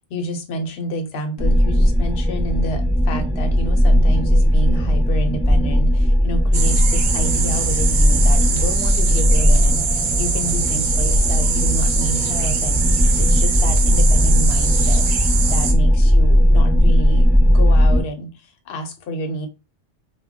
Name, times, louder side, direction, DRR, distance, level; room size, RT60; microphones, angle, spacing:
voice 1, 0.1-19.5, right 1 dB, 60° left, 5 dB, 0.8 m, -29 dB
sound 1, 1.4-18.0, equal, 5° right, 0.5 m, -17 dB
sound 2, 6.5-15.7, right 5 dB, 60° right, 0.5 m, -23 dB
2.2 x 2.2 x 3.7 m, 0.28 s
omnidirectional pair, 1.3 m